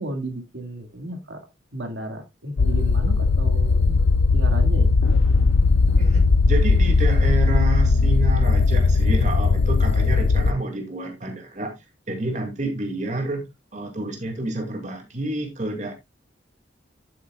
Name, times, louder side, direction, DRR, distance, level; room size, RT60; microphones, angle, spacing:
voice 1, 0.0-1.4 1.7-4.9, right 1 dB, 75° right, 1.9 m, -34 dB
sound 1, 2.6-10.5, left 3 dB, 70° left, 0.4 m, -18 dB
voice 2, 6.0-11.7 12.1-13.5 13.7-15.9, right 2 dB, 40° right, 2.3 m, -29 dB
11.0 x 8.5 x 2.3 m
head